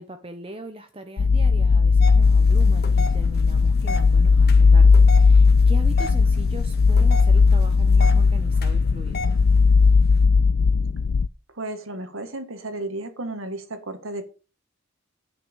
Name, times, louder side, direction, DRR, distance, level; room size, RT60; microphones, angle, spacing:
voice 1, 0.0-9.3, right 1 dB, 25° right, 7 dB, 1.0 m, -39 dB
sound 1, 1.2-11.3, left 4 dB, 85° left, 0.5 m, -17 dB
sound 2, 2.0-10.2, left 2 dB, 50° left, 1.9 m, -37 dB
voice 2, 11.6-14.2, right 2 dB, 90° right, 8 dB, 2.0 m, -33 dB
10.5 x 6.1 x 7.0 m, 0.34 s
head